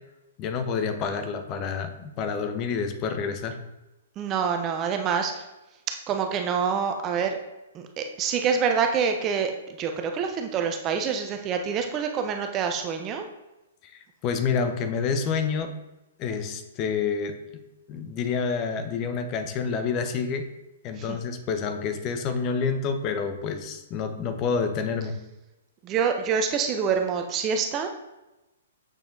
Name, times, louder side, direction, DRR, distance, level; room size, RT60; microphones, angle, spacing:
voice 1, 0.4-3.6 13.8-15.7 16.2-17.4 17.9-20.5 20.8-25.2, left 5 dB, 30° left, 8 dB, 1.1 m, -28 dB
voice 2, 4.2-5.5 6.1-7.4 7.7-13.3 21.0-21.2 25.8-27.9, right 6 dB, 25° right, 5 dB, 0.9 m, -26 dB
7.6 x 7.0 x 3.9 m, 0.99 s
figure-of-eight pair, 115°, 0 cm